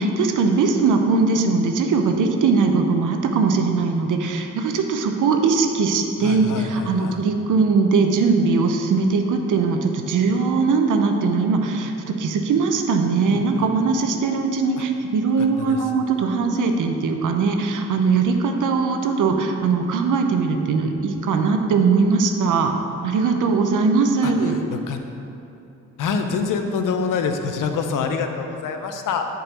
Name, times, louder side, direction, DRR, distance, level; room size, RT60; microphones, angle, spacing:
voice 1, 0.0-22.7 23.0-24.5, right 4 dB, 65° right, 4 dB, 0.8 m, -20 dB
voice 2, 6.2-7.2 13.3-13.7 14.8-14.9 15.4-15.9 24.2-25.0 26.0-29.3, left 5 dB, 65° left, 6 dB, 0.7 m, -26 dB
6.6 x 3.9 x 6.1 m, 2.8 s
supercardioid pair, 50°, 34 cm